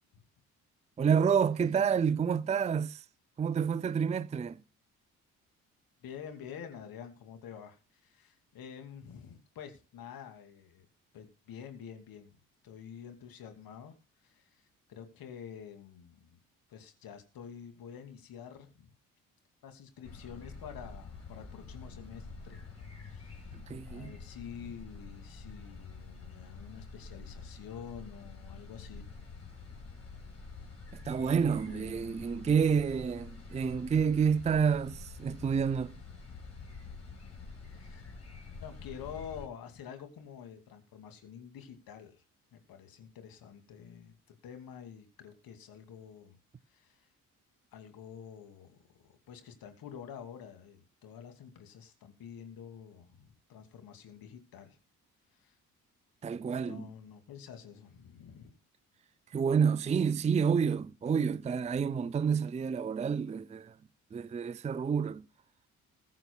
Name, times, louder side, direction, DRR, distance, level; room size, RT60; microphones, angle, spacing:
voice 1, 1.0-3.0 3.4-4.6 23.5-24.1 30.9-36.0 56.2-56.9 59.3-63.8 64.1-65.3, right 6 dB, 15° right, 0.5 m, -29 dB
voice 2, 6.0-10.9 11.1-12.4 12.6-16.4 16.7-18.9 19.6-22.6 23.0-23.6 23.8-29.1 31.7-32.0 37.7-38.0 38.6-42.2 42.5-46.4 46.7-47.1 47.7-48.8 49.1-54.8 55.4-55.6 56.6-58.5 61.2-61.4, left 8 dB, 55° left, 2.6 m, -48 dB
sound 1, 20.0-39.5, left 4 dB, 35° left, 5.6 m, -47 dB
20.5 x 7.5 x 2.3 m
figure-of-eight pair, 45°, 42 cm